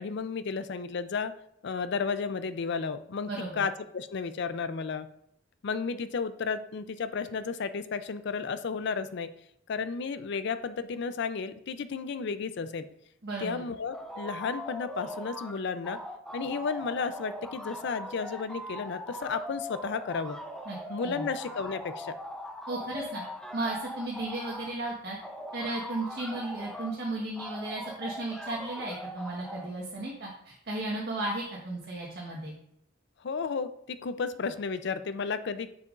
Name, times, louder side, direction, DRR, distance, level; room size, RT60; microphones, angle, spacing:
voice 1, 0.0-1.3 1.6-3.3 3.6-5.1 5.6-9.3 9.7-12.9 13.4-16.0 16.3-20.4 20.9-22.1 33.2-35.7, left 5 dB, 60° left, 12 dB, 0.4 m, -33 dB
voice 2, 3.3-3.6 13.2-13.6 20.6-20.8 21.0-21.2 22.7-23.2 23.5-25.2 25.5-32.5, right 2 dB, 55° right, -4 dB, 1.3 m, -35 dB
scream convolution chaos, 13.9-15.6 15.8-24.7 25.2-27.0 27.4-29.7, equal, 5° left, 0.6 m, -41 dB
6.8 x 6.8 x 2.5 m, 0.72 s
head